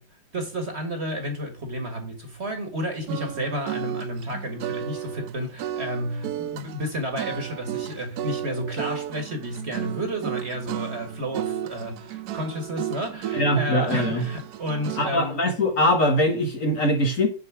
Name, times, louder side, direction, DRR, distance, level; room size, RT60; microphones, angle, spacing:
voice 1, 0.3-15.4, equal, 35° right, 1.7 m, -31 dB
sound 1, 3.1-15.2, right 11 dB, 70° right, 1.0 m, -33 dB
voice 2, 13.3-14.3 15.0-17.3, left 1 dB, 45° left, 1.5 m, -22 dB
6.9 x 4.7 x 6.0 m
omnidirectional pair, 2.0 m